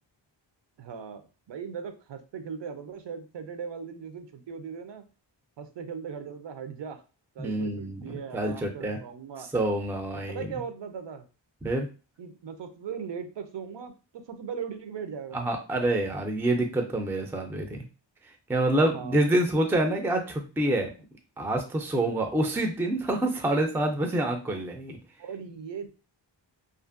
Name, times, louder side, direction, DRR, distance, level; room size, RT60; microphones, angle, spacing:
voice 1, 0.8-5.0 5.6-7.0 7.4-9.5 10.1-11.2 12.2-15.5 18.9-19.3 21.9-22.3 25.2-25.9, right 6 dB, 70° right, 8 dB, 0.5 m, -39 dB
voice 2, 7.4-9.0 9.5-10.5 11.6-11.9 15.3-17.8 18.5-20.9 21.4-25.0, right 1 dB, 5° right, 4 dB, 0.3 m, -27 dB
2.5 x 2.5 x 2.4 m, 0.33 s
wide cardioid pair, 120°, 46 cm